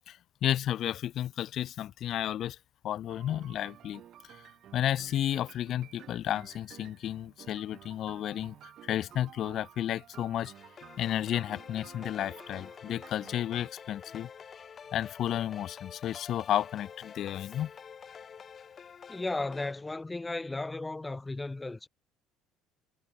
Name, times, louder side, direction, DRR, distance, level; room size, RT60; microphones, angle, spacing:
voice 1, 0.1-2.6 2.8-4.0 4.3-4.4 4.7-10.5 11.0-14.3 14.9-17.7, left 11 dB, 50° left, 0.8 m, -32 dB
sound 1, 3.1-13.7, right 11 dB, 45° right, 6.4 m, -53 dB
sound 2, 10.5-19.7, left 7 dB, 30° left, 2.3 m, -48 dB
voice 2, 19.1-21.9, left 2 dB, 10° left, 1.0 m, -35 dB
cardioid pair, 140°, 0 cm